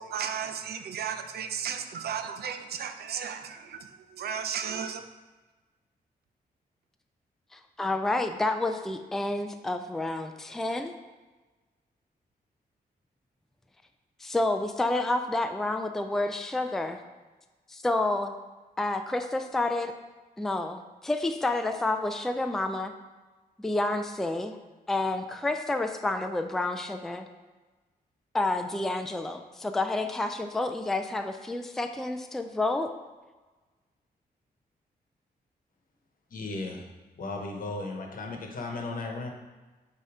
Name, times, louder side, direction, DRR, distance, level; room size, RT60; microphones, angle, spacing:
voice 1, 0.0-5.0, right 7 dB, 85° right, 0.5 m, -34 dB
voice 2, 7.5-10.9 14.2-17.0 17.7-18.3 18.8-19.9 20.4-22.9 23.6-24.6 24.9-27.3 28.3-32.9, left 2 dB, ahead, 0.3 m, -29 dB
voice 3, 36.3-36.9 37.2-39.3, left 3 dB, 60° left, 1.0 m, -35 dB
8.5 x 2.8 x 4.9 m
wide cardioid pair, 135°, 16 cm